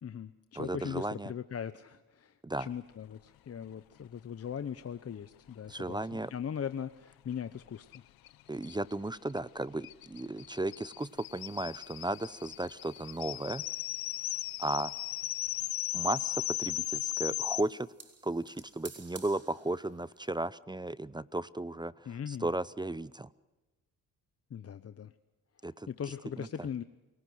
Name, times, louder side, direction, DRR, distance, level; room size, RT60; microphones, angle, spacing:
voice 1, 0.0-8.0 22.0-22.5 24.5-25.1 25.6-26.8, left 8 dB, 40° left, 11 dB, 0.9 m, -40 dB
voice 2, 0.6-1.3 2.4-2.7 5.7-6.3 8.5-13.6 14.6-14.9 15.9-17.9 18.2-23.3 25.6-25.9 26.4-26.5, right 2 dB, 10° right, 18 dB, 0.6 m, -35 dB
sound 1, 7.9-8.0 8.3-8.4 8.6-17.6, left 15 dB, 75° left, 0.8 m, -37 dB
sound 2, 11.0-20.4, right 5 dB, 40° right, 3.7 m, -57 dB
28.0 x 17.5 x 6.4 m, 1.1 s
supercardioid pair, 65°, 36 cm